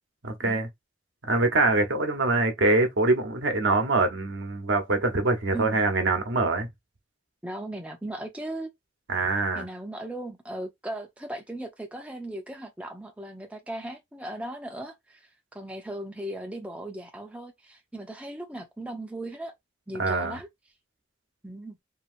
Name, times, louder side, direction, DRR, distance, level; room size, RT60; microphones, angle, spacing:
voice 1, 0.2-0.7 1.2-6.7 9.1-9.7 20.0-20.4, right 2 dB, 90° right, 0.9 m, -24 dB
voice 2, 7.4-8.7 9.5-19.5 19.9-20.5 21.4-21.8, right 1 dB, 5° right, 0.6 m, -37 dB
2.8 x 2.8 x 2.5 m
head